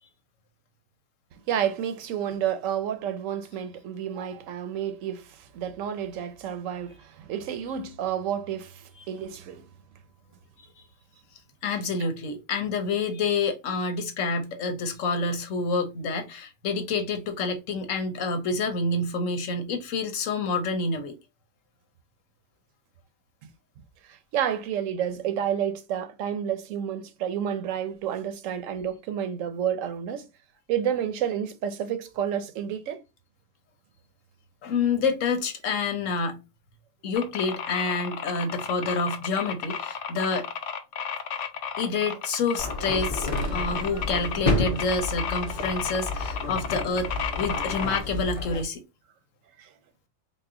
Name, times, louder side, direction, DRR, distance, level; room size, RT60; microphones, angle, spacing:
voice 1, 1.5-9.7 24.0-30.3 30.7-33.0 49.6-49.7, right 9 dB, 85° right, 1.0 m, -30 dB
voice 2, 11.6-21.2 34.6-36.4 37.0-40.5 41.8-48.8, left 4 dB, 90° left, 1.2 m, -28 dB
sound 1, 37.2-48.0, left 7 dB, 70° left, 1.0 m, -33 dB
sound 2, 42.6-48.6, left 2 dB, 30° left, 0.8 m, -30 dB
4.1 x 2.1 x 3.6 m
omnidirectional pair, 1.3 m